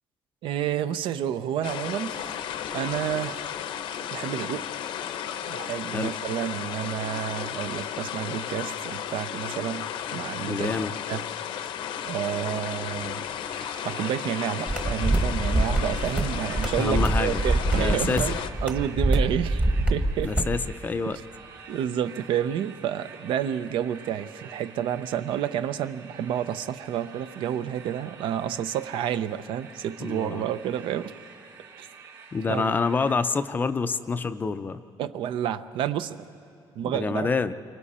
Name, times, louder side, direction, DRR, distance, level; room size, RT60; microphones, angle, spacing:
voice 1, 0.4-2.4 2.7-3.4 4.1-4.6 5.5-9.8 10.1-11.2 12.1-13.2 13.6-19.6 19.9-20.3 21.7-31.1 31.8-31.9 32.5-32.8 35.0-36.2 36.8-37.3, right 10 dB, 75° right, 12 dB, 0.6 m, -30 dB
sound 1, 1.6-18.5, left 9 dB, 70° left, 0.8 m, -34 dB
voice 2, 10.5-10.9 16.8-17.4 17.7-18.3 20.2-21.2 30.0-30.4 32.3-34.8 36.8-37.5, left 4 dB, 20° left, 11 dB, 0.4 m, -27 dB
sound 2, 13.5-33.1, right 6 dB, 50° right, 3.7 m, -47 dB
sound 3, 14.7-20.6, right 2 dB, 15° right, 1.1 m, -25 dB
28.0 x 24.5 x 4.3 m, 2.6 s
cardioid pair, 170°, 9 cm